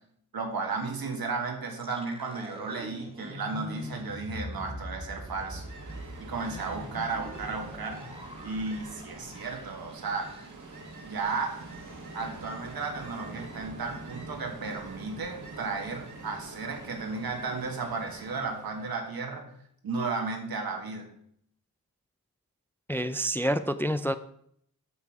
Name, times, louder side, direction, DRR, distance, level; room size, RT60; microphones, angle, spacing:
voice 1, 0.3-5.6 6.2-8.0 8.4-10.3 11.1-11.6 12.1-19.5 19.8-21.1, right 4 dB, 75° right, 2 dB, 1.9 m, -34 dB
sound 1, 1.7-10.8 11.1-11.2 11.6-12.0, left 1 dB, 15° right, 1.8 m, -43 dB
Ocean, 5.1-19.2, right 2 dB, 55° right, 1.8 m, -45 dB
voice 2, 22.9-24.1, equal, 5° left, 11 dB, 0.4 m, -28 dB
8.1 x 6.9 x 4.8 m, 0.68 s
cardioid pair, 75°, 36 cm